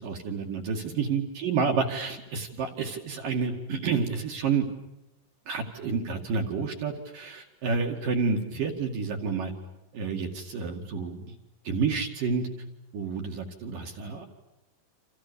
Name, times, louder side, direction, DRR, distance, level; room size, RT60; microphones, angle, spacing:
voice 1, 0.0-4.7 5.5-9.5 9.9-11.3 11.6-12.5 12.9-14.3, right 5 dB, 50° right, 3 dB, 3.4 m, -29 dB
29.0 x 27.5 x 7.1 m, 0.92 s
omnidirectional pair, 5.7 m